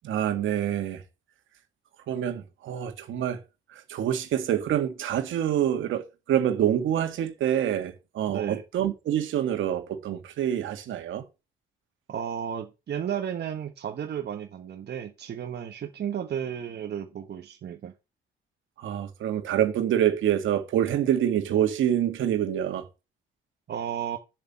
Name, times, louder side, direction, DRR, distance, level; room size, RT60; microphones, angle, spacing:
voice 1, 0.0-1.0 2.1-3.4 3.7-11.2 18.8-22.9, right 10 dB, 75° right, 2.0 m, -26 dB
voice 2, 8.3-8.6 12.1-17.9 23.7-24.2, right 9 dB, 55° right, 1.3 m, -33 dB
7.1 x 6.6 x 7.0 m
cardioid pair, 90°, 20 cm